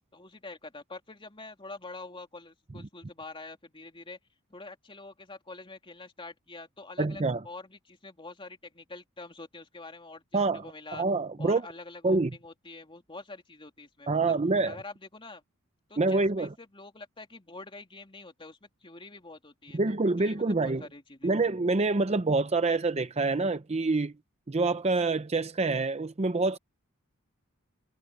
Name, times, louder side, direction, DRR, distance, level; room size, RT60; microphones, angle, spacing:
voice 1, 0.1-4.2 4.5-11.0 11.4-14.4 14.7-15.4 15.9-21.3, left 3 dB, 25° left, 3.1 m, -46 dB
voice 2, 7.0-7.4 10.3-10.7 10.9-11.6 12.0-12.3 14.1-14.8 16.0-16.5 19.7-20.9 21.2-24.1 24.5-26.6, right 3 dB, 30° right, 0.6 m, -26 dB
head